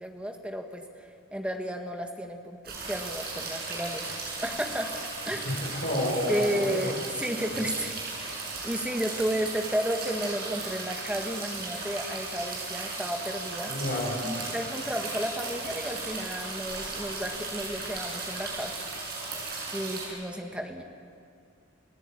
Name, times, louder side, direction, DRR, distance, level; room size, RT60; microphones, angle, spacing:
voice 1, 0.0-4.2 4.4-5.4 6.3-8.0 8.3-13.7 14.2-18.7 19.7-20.8, equal, 5° right, 3 dB, 1.8 m, -33 dB
sound 1, 2.7-20.1, right 3 dB, 50° right, 7.8 m, -36 dB
voice 2, 5.3-6.8 7.5-7.7 13.6-14.2, left 1 dB, 55° left, -2 dB, 6.1 m, -30 dB
28.5 x 17.0 x 9.1 m, 2.4 s
head